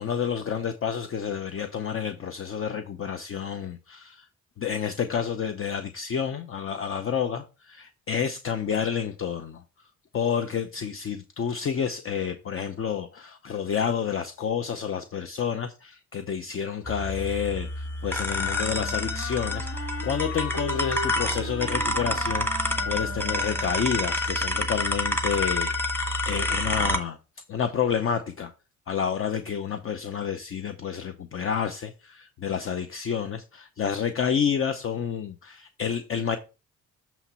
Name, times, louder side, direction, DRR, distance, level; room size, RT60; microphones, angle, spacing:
voice 1, 0.0-4.3 4.6-9.6 10.1-27.2 27.5-28.5 28.9-36.4, left 7 dB, 45° left, 0.7 m, -29 dB
sound 1, 16.9-27.0, left 1 dB, 5° left, 1.1 m, -28 dB
Wind instrument woodwind instrument, 18.3-23.9, left 3 dB, 70° left, 2.6 m, -38 dB
7.0 x 3.0 x 5.5 m
cardioid pair, 90°, 30 cm